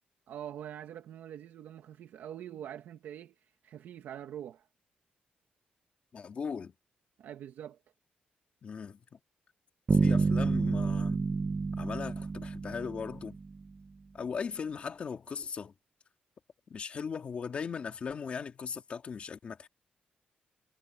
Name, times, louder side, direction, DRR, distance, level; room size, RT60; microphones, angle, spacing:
voice 1, 0.3-3.3 3.6-4.7 7.2-7.8, right 10 dB, 90° right, 1.8 m, -44 dB
voice 2, 6.1-6.7 8.6-9.0 9.9-11.2 11.8-13.4 14.1-15.7 16.7-19.7, left 6 dB, 40° left, 2.3 m, -38 dB
sound 1, 9.9-13.6, right 4 dB, 30° right, 1.0 m, -29 dB
wide cardioid pair, 165°, 3 cm